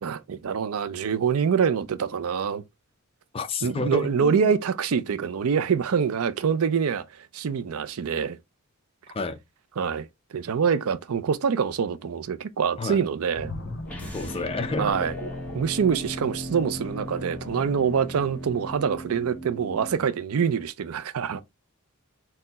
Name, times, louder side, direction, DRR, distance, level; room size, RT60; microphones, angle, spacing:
voice 1, 0.0-2.6 3.6-8.4 9.8-13.5 14.8-15.1 15.5-21.4, right 6 dB, 70° right, 0.4 m, -25 dB
voice 2, 3.3-4.6 9.1-9.4 12.8-13.0 14.1-14.9, left 3 dB, 25° left, 0.5 m, -30 dB
sound 1, 13.3-16.9 17.4-17.6, left 2 dB, 50° left, 1.0 m, -39 dB
sound 2, 13.9-20.0, equal, 5° left, 0.9 m, -37 dB
4.3 x 2.1 x 4.0 m
head